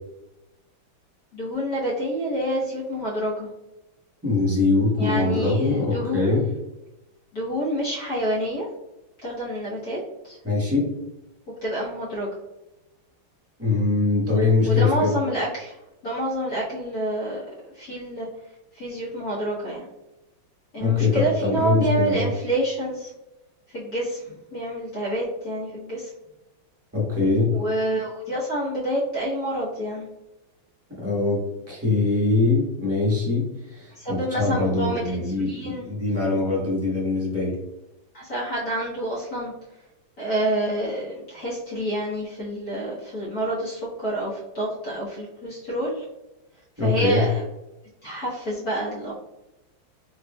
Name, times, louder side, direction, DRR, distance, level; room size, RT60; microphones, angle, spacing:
voice 1, 1.3-3.5 5.0-6.4 7.3-8.7 9.2-10.0 10.2-10.4 11.6-12.3 14.6-15.8 16.0-17.4 17.7-18.3 18.7-19.8 20.7-23.1 23.7-26.1 27.5-30.1 33.9-35.9 38.1-39.5 40.2-46.0 46.8-47.4 48.0-49.1, right 1 dB, 55° left, -7 dB, 1.3 m, -28 dB
voice 2, 4.2-6.5 10.4-10.9 13.6-15.1 20.8-22.3 26.9-27.6 31.0-37.6 46.8-47.3, left 3 dB, 10° right, -5 dB, 0.7 m, -22 dB
4.2 x 3.2 x 2.2 m, 0.96 s
omnidirectional pair, 2.2 m